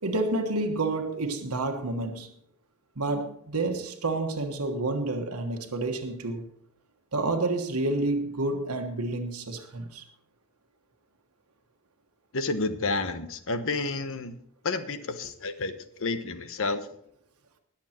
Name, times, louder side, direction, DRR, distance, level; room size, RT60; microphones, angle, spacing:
voice 1, 0.0-2.3 3.0-6.5 7.1-10.0, right 2 dB, 90° right, 1.3 m, -29 dB
voice 2, 12.3-14.4 14.6-15.7 16.0-16.9, left 3 dB, 65° left, 1.1 m, -30 dB
20.0 x 7.2 x 4.4 m
head